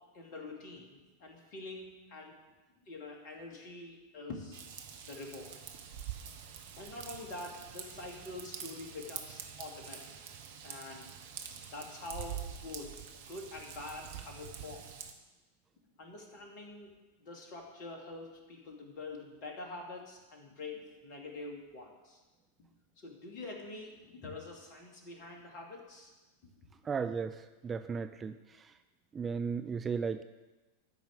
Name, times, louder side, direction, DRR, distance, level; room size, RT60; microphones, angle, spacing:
voice 1, 0.1-2.4 2.9-4.6 5.1-5.6 6.8-10.1 10.6-11.1 11.7-14.8 16.0-22.2 23.0-26.1 26.4-26.6, left 2 dB, 45° left, 1 dB, 2.6 m, -46 dB
Raindrop / Vehicle horn car horn honking / Trickle dribble, 4.5-15.1, right 8 dB, 55° right, 1.1 m, -46 dB
voice 2, 26.9-28.3 29.1-30.2, right 5 dB, 20° right, 9 dB, 0.4 m, -35 dB
13.0 x 5.4 x 7.8 m, 1.2 s
figure-of-eight pair, 90°, 0 cm